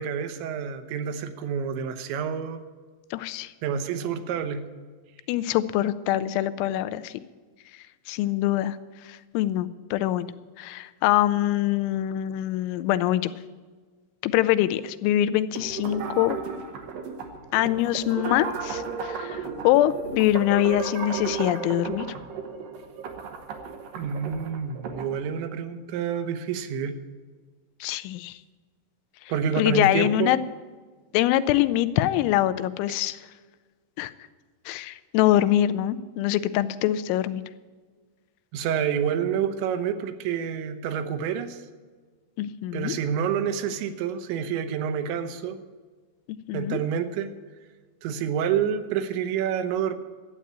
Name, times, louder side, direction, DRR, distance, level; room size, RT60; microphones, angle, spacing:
voice 1, 0.0-2.6 3.6-4.6 24.0-27.0 29.3-30.3 38.5-41.6 42.7-45.6 46.5-47.3 48.0-49.9, right 8 dB, 80° right, 9 dB, 3.1 m, -28 dB
voice 2, 3.1-3.5 5.3-7.1 8.1-8.8 9.1-10.3 10.6-13.3 14.2-16.4 17.5-22.1 27.8-28.4 29.6-30.4 31.1-33.2 34.0-34.1 34.7-37.4 42.4-43.0 46.5-46.8, left 13 dB, 90° left, 13 dB, 3.0 m, -24 dB
sound 1, 15.5-25.1, right 5 dB, 65° right, 2.4 m, -34 dB
12.5 x 8.6 x 8.5 m, 1.4 s
omnidirectional pair, 5.3 m